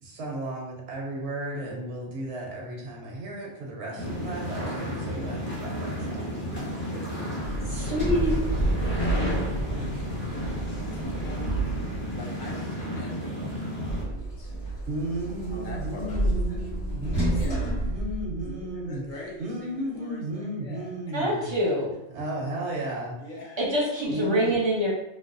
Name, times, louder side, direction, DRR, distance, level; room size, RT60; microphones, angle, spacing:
voice 1, 0.0-6.4 14.9-19.0 19.4-21.5 22.1-23.2 24.1-24.6, right 1 dB, 80° right, -1 dB, 0.9 m, -34 dB
sound 1, 4.0-14.0, left 1 dB, 15° left, 0.5 m, -32 dB
voice 2, 6.9-8.1 8.6-11.5 12.2-14.8 15.3-16.7 17.3-17.6 18.4-21.5 23.2-23.9, left 1 dB, 50° left, -3 dB, 0.8 m, -43 dB
Sliding door, 7.4-12.3 13.9-18.8, right 2 dB, 85° left, 1.5 m, -30 dB
voice 3, 7.7-8.3 21.1-22.0 23.6-24.9, equal, 30° right, -5 dB, 0.6 m, -25 dB
3.2 x 2.1 x 2.5 m, 0.94 s
omnidirectional pair, 1.2 m